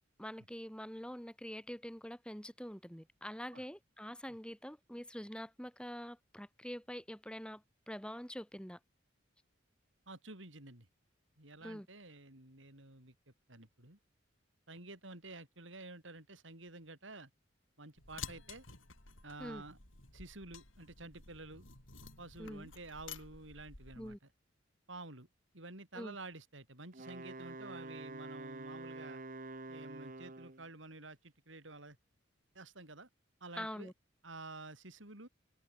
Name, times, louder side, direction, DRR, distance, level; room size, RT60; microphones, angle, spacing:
voice 1, 0.2-8.8 11.6-11.9 19.4-19.6 22.4-22.7 24.0-24.2 25.9-26.2 33.6-33.9, equal, 5° left, 4.1 m, -45 dB
voice 2, 10.1-10.9 11.4-13.1 13.5-14.0 14.7-17.3 17.8-18.6 19.2-19.8 20.1-21.7 22.2-24.2 24.9-25.3 25.5-29.2 29.7-32.0 32.5-33.1 33.4-33.9 34.2-35.3, right 2 dB, 75° right, 5.4 m, -50 dB
sound 1, 18.0-24.2, left 6 dB, 85° left, 5.5 m, -52 dB
Wind instrument woodwind instrument, 26.9-30.7, right 2 dB, 45° right, 1.7 m, -47 dB
head